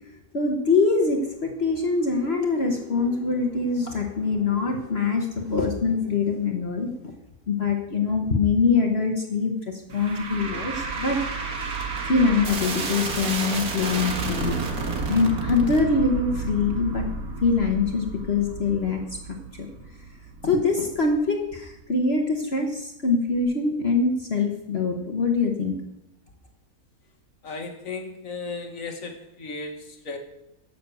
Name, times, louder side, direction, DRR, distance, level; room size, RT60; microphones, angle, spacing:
voice 1, 0.3-6.9 7.5-11.2 12.1-14.6 15.1-17.1 17.4-19.0 19.6-19.7 20.4-25.7, left 4 dB, 45° left, 2 dB, 1.3 m, -24 dB
sound 1, 9.9-21.2, right 4 dB, 70° right, 2.0 m, -31 dB
voice 2, 27.4-30.2, left 4 dB, 60° left, 4 dB, 1.8 m, -35 dB
12.0 x 7.0 x 6.7 m, 0.87 s
omnidirectional pair, 1.6 m